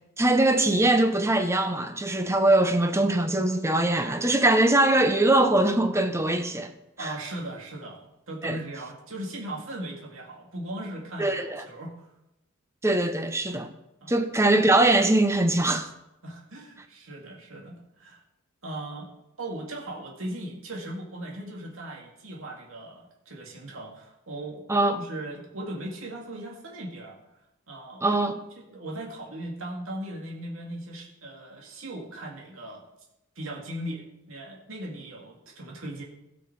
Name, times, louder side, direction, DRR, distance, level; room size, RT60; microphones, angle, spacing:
voice 1, 0.2-6.7 7.0-7.1 8.4-8.6 11.2-11.6 12.8-13.7 14.1-15.9 24.7-25.0 28.0-28.4, right 2 dB, 15° right, 0.8 m, -22 dB
voice 2, 7.0-12.1 14.0-14.1 16.2-18.2 18.6-19.1 19.4-24.7 24.9-27.2 27.7-28.1 28.6-32.8 33.4-36.0, right 1 dB, 75° right, 2.6 m, -38 dB
16.5 x 6.1 x 4.8 m
head